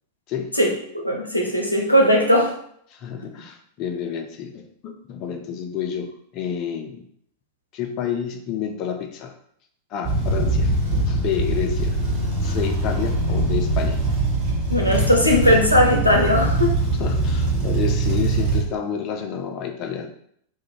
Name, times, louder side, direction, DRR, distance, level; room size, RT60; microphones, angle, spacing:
voice 1, 0.6-2.5 14.7-16.8, equal, 85° left, 0 dB, 0.5 m, -18 dB
voice 2, 2.9-6.1 6.3-7.1 7.7-9.4 9.9-10.7 11.1-12.0 12.4-14.0 17.0-20.1, left 8 dB, 40° left, 5 dB, 0.4 m, -29 dB
sound 1, 10.0-18.6, right 2 dB, 45° right, 1.0 m, -22 dB
2.4 x 2.1 x 3.1 m, 0.66 s
figure-of-eight pair, 90°, 0 cm